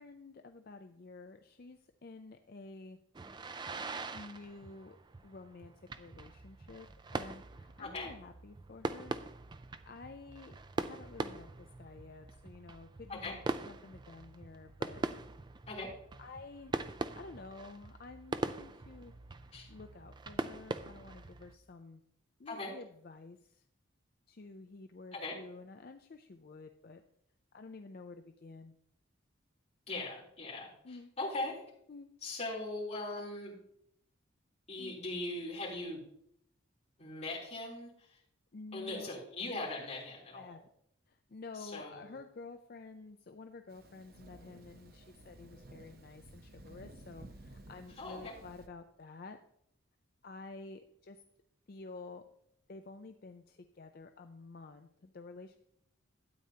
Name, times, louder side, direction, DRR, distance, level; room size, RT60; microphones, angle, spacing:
voice 1, 0.0-3.0 4.1-5.0 5.2-6.9 7.1-9.2 9.8-15.0 16.2-16.8 17.1-19.1 19.7-22.0 22.4-23.6 24.3-27.0 27.5-28.7 30.8-31.1 31.9-32.1 34.8-35.0 38.5-39.1 40.3-40.6 41.1-49.4 50.2-51.2 51.7-52.2 52.7-55.6, left 3 dB, 45° left, 6 dB, 0.4 m, -50 dB
sound 1, 3.1-21.6, right 3 dB, 20° right, 0.3 m, -42 dB
voice 2, 7.8-8.1 13.1-13.3 15.7-15.9 19.5-19.7 22.4-22.7 25.1-25.4 29.9-31.6 32.2-33.6 34.7-36.0 37.0-38.2 38.7-40.5 41.5-42.2 48.0-48.4, left 2 dB, 30° left, -6 dB, 3.3 m, -40 dB
Thunder, 43.7-48.7, right 1 dB, 45° right, 0.8 m, -54 dB
12.5 x 8.8 x 2.8 m, 0.72 s
head